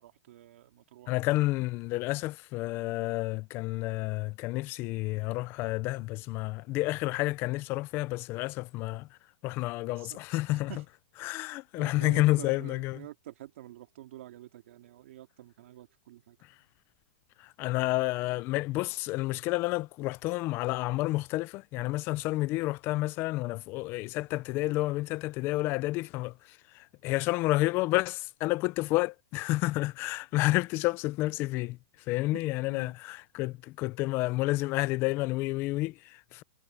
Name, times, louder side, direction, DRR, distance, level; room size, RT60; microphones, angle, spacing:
voice 1, 0.0-1.2 9.9-10.2 10.5-10.9 11.4-16.4 32.3-32.9, right 13 dB, 65° right, 2.3 m, -48 dB
voice 2, 1.1-9.1 9.4-10.7 11.2-13.0 17.6-31.8 32.1-36.4, left 19 dB, 30° left, 0.5 m, -30 dB
hypercardioid pair, 155°, 7 cm